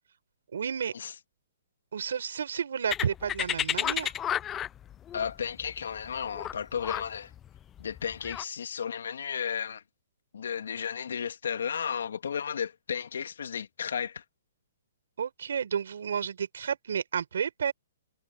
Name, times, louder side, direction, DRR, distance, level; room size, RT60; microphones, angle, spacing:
voice 1, 0.5-0.9 1.9-4.1 15.2-17.7, right 7 dB, 75° right, 4.6 m, -31 dB
sound 1, 2.9-8.4, left 10 dB, 10° left, 0.3 m, -32 dB
voice 2, 5.1-7.3 7.8-9.8 10.3-14.2, left 7 dB, 75° left, 2.5 m, -33 dB
hypercardioid pair, 175°, 0 cm